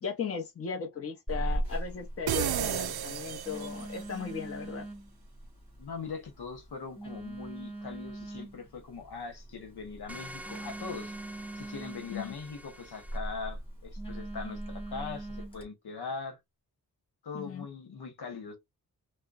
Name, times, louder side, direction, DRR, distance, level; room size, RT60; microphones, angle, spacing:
voice 1, 0.0-4.8 12.1-12.4 17.3-17.7, left 6 dB, 40° left, 0.8 m, -37 dB
Telephone, 1.3-15.6, right 1 dB, 15° left, 1.9 m, -40 dB
sound 1, 2.3-4.1, right 10 dB, 85° right, 0.5 m, -32 dB
voice 2, 5.8-11.1 11.6-16.4 17.2-18.6, left 5 dB, 85° left, 1.1 m, -41 dB
sound 2, 10.1-13.2, right 1 dB, 5° right, 0.3 m, -46 dB
4.3 x 2.2 x 2.4 m
wide cardioid pair, 140°, 37 cm